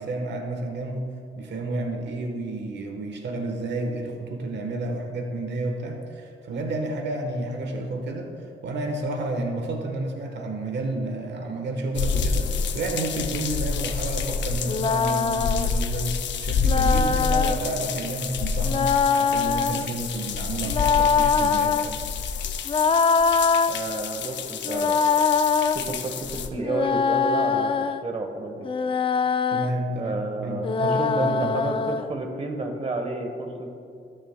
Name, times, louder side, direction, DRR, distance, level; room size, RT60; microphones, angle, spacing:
voice 1, 0.0-8.3 8.6-12.5 12.7-21.9 29.5-31.5, right 2 dB, 60° right, 3 dB, 1.2 m, -30 dB
sound 1, 11.9-26.5, left 5 dB, 65° left, 0.6 m, -28 dB
sound 2, 14.6-15.7 16.6-17.6 18.6-19.9 20.7-21.9 22.7-23.7 24.6-25.8 26.6-28.0 28.6-29.7 30.6-32.0, left 5 dB, 25° left, 0.4 m, -23 dB
voice 2, 23.7-25.0 25.7-28.7 30.0-33.7, right 2 dB, 30° right, 3 dB, 1.1 m, -31 dB
18.0 x 6.3 x 2.2 m, 2.4 s
cardioid pair, 90°, 20 cm